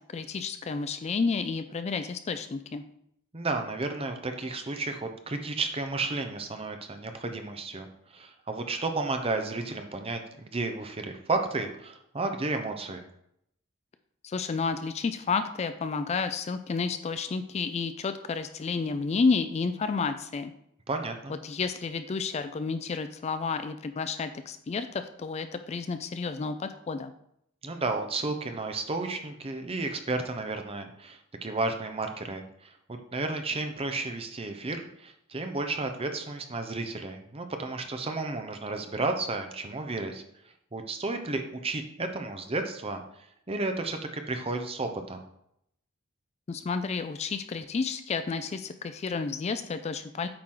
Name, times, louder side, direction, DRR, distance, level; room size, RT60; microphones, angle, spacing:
voice 1, 0.1-2.8 14.2-20.5 21.3-27.1 46.5-50.3, left 4 dB, 30° left, 10 dB, 0.3 m, -31 dB
voice 2, 3.3-13.0 20.9-21.3 27.6-40.2 40.7-43.0 43.5-45.2, right 3 dB, 30° right, 6 dB, 0.7 m, -32 dB
8.6 x 4.7 x 3.8 m, 0.75 s
head